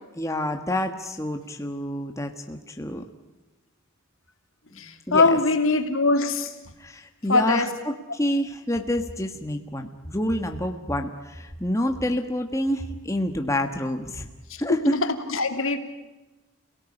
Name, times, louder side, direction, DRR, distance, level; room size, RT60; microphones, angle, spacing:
voice 1, 0.2-3.0 5.1-5.4 6.8-14.3 14.6-15.0, left 1 dB, 15° left, 1.4 m, -28 dB
voice 2, 5.1-6.5 7.3-7.7 15.3-15.8, left 3 dB, 65° left, 2.8 m, -21 dB
29.0 x 18.0 x 9.9 m
head